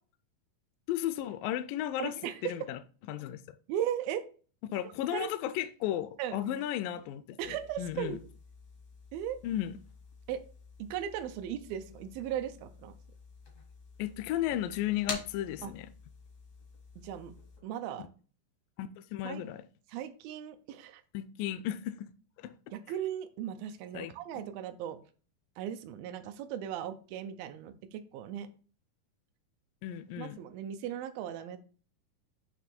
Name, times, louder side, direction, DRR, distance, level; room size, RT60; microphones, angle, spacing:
voice 1, 0.9-2.1 2.4-2.8 3.1-3.4 4.7-8.2 9.4-9.8 14.0-15.9 18.8-19.6 21.1-22.1 22.4-22.5 23.9-24.5 29.8-30.4, left 12 dB, 80° left, 2.1 m, -34 dB
voice 2, 2.0-2.5 3.7-4.2 5.1-5.3 6.2-6.4 7.4-8.2 9.1-9.4 10.3-10.4 10.8-12.9 15.6-15.7 17.0-17.3 17.6-18.1 19.2-19.4 19.9-21.0 22.7-25.0 25.6-28.5 30.2-31.6, right 10 dB, 90° right, 2.4 m, -37 dB
sound 1, 7.4-17.6, left 3 dB, 65° left, 0.7 m, -48 dB
8.4 x 3.0 x 4.3 m
omnidirectional pair, 4.1 m